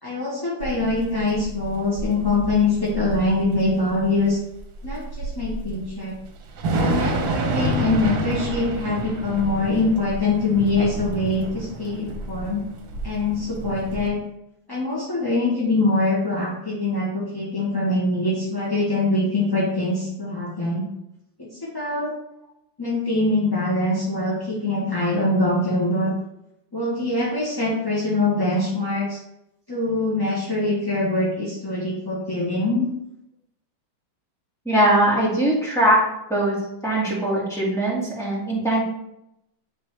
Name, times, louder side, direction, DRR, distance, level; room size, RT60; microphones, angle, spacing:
voice 1, 0.0-4.4 4.8-6.1 6.7-12.6 13.0-14.2 14.7-20.8 21.4-22.2 22.8-26.1 26.7-29.2 29.7-32.9, left 2 dB, 20° left, -6 dB, 0.6 m, -23 dB
Thunder / Rain, 0.6-14.1, right 2 dB, 90° right, 1.6 m, -29 dB
voice 2, 34.7-36.0 36.3-36.6 36.8-38.8, right 1 dB, ahead, -7 dB, 2.0 m, -20 dB
9.1 x 3.6 x 3.2 m, 0.82 s
omnidirectional pair, 2.1 m